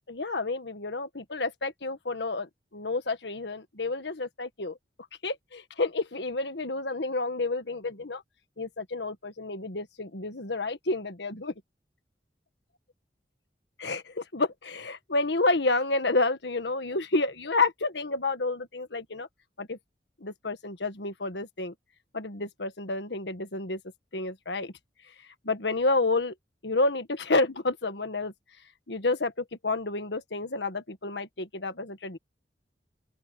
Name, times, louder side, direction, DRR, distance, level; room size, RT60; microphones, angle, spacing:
voice 1, 0.1-4.8 5.2-8.2 8.6-11.5 13.8-19.3 19.6-19.8 20.2-21.7 22.1-23.8 24.1-24.7 25.4-26.3 26.6-28.3 28.9-32.2, left 3 dB, 80° left, 1.6 m, -30 dB
open air
head